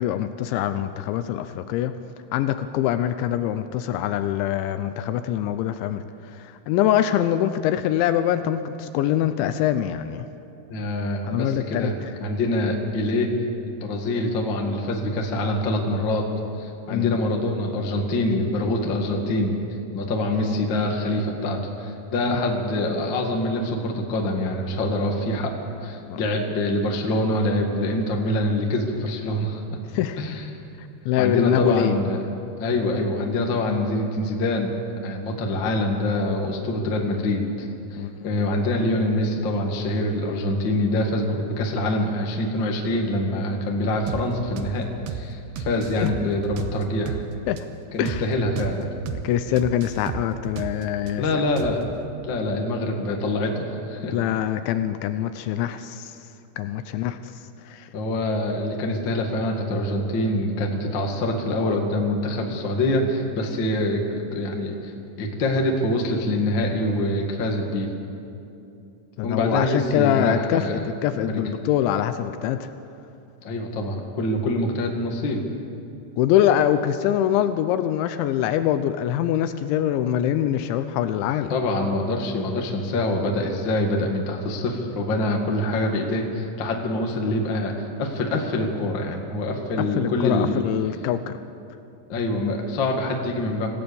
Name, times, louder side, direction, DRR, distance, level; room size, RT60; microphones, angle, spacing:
voice 1, 0.0-1.9 2.3-10.3 11.3-12.1 16.9-17.2 26.1-26.3 29.9-30.2 30.8-32.0 38.0-38.2 46.0-46.1 47.5-47.6 48.0-48.3 49.2-51.2 54.1-56.2 56.6-57.9 69.2-72.7 76.2-81.5 90.0-91.4, left 11 dB, 80° left, 10 dB, 2.8 m, -24 dB
voice 2, 10.7-11.9 12.2-13.3 13.7-16.2 16.6-19.6 19.9-25.5 25.8-29.8 30.2-30.4 31.2-32.2 32.6-34.7 35.0-47.2 47.9-48.9 51.2-51.8 52.2-54.1 57.9-64.0 64.3-64.9 65.2-67.9 69.2-70.8 71.2-71.3 73.4-75.4 81.5-90.6 92.1-93.7, left 1 dB, 55° left, 1 dB, 1.3 m, -25 dB
sound 1, 44.1-44.3 44.6-44.8 45.1-45.3 45.6-47.3 47.6-47.7 48.1-48.3 48.6-48.8 49.1-49.3 49.6-51.1 51.6-52.0, right 7 dB, 75° right, 2.5 m, -33 dB
26.0 x 16.5 x 6.9 m, 2.8 s
omnidirectional pair, 5.6 m